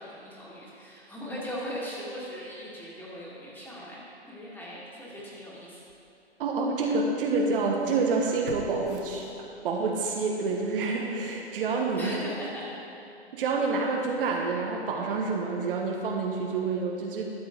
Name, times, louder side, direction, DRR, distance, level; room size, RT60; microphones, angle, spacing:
voice 1, 0.0-5.8 12.0-12.7, equal, 5° left, -6 dB, 2.2 m, -39 dB
sound 1, 5.2-5.3 5.9-6.0 8.4-9.9 10.3-10.4, right 5 dB, 85° right, 0.9 m, -43 dB
voice 2, 6.4-12.2 13.3-17.2, right 4 dB, 55° right, 0 dB, 1.4 m, -28 dB
12.5 x 7.8 x 3.9 m, 2.8 s
figure-of-eight pair, 120°, 33 cm